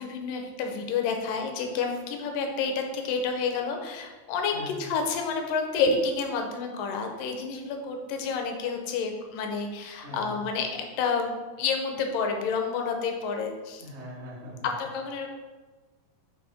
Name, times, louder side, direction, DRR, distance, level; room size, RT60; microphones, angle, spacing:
voice 1, 0.0-11.3 11.6-13.9 14.8-15.3, left 5 dB, 85° left, 3 dB, 2.4 m, -29 dB
voice 2, 4.5-4.9 9.9-10.5 13.8-14.7, equal, 40° right, -4 dB, 0.9 m, -42 dB
6.3 x 5.5 x 4.2 m, 1.3 s
omnidirectional pair, 4.0 m